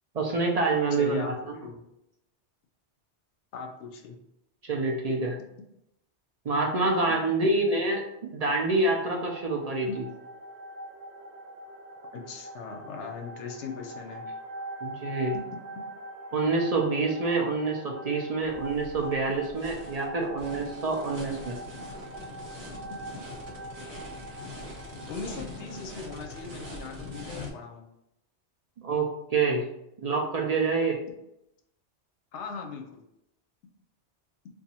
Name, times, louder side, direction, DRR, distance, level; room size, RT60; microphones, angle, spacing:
voice 1, 0.1-1.4 4.6-5.4 6.5-9.9 14.8-15.3 16.3-21.6 28.8-29.7 30.0-31.0, right 3 dB, 55° right, 0 dB, 0.4 m, -27 dB
voice 2, 0.9-1.8 3.5-4.2 5.1-5.5 6.8-7.0 9.9-10.0 12.1-14.2 15.3-15.6 25.1-27.9 32.3-33.0, left 5 dB, 85° left, 4 dB, 0.9 m, -39 dB
sound 1, 9.1-27.3, right 1 dB, 70° right, 0.8 m, -43 dB
sound 2, 18.4-27.5, left 2 dB, 35° right, 0.8 m, -43 dB
2.7 x 2.4 x 4.0 m, 0.82 s
omnidirectional pair, 1.2 m